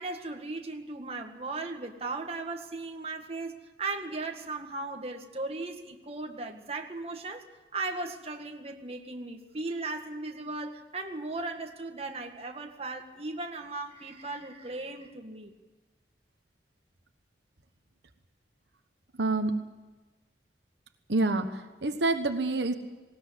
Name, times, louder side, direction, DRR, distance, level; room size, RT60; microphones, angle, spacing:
voice 1, 0.0-7.5 7.7-15.5, right 3 dB, 35° right, 1.9 m, -37 dB
voice 2, 19.1-19.6 21.1-22.7, right 2 dB, 70° right, 1.3 m, -27 dB
19.5 x 19.0 x 8.2 m
head